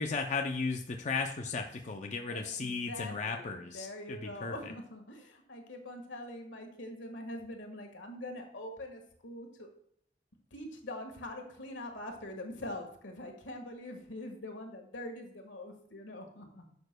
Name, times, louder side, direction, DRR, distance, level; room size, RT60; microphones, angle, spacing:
voice 1, 0.0-4.7, left 4 dB, 40° left, 3 dB, 0.5 m, -35 dB
voice 2, 2.3-9.7 10.5-16.6, left 1 dB, 80° left, 4 dB, 1.5 m, -44 dB
11.0 x 6.9 x 2.2 m, 0.65 s
head